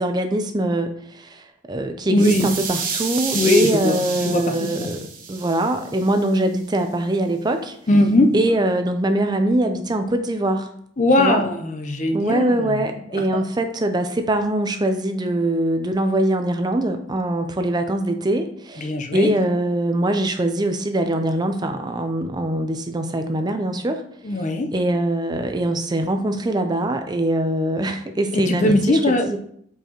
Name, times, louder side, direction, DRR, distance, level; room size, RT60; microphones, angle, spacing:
voice 1, 0.0-7.8 8.3-10.7 11.2-11.4 12.1-24.0 24.7-29.4, right 1 dB, 20° right, 6 dB, 0.4 m, -23 dB
voice 2, 2.1-2.5 3.3-5.0 7.9-8.4 11.0-12.8 13.3-13.4 18.8-19.3 24.2-24.7 28.4-29.3, left 2 dB, 40° left, 5 dB, 0.6 m, -20 dB
sound 1, 2.2-6.2, right 5 dB, 45° right, 1.0 m, -30 dB
7.8 x 4.6 x 2.9 m, 0.66 s
head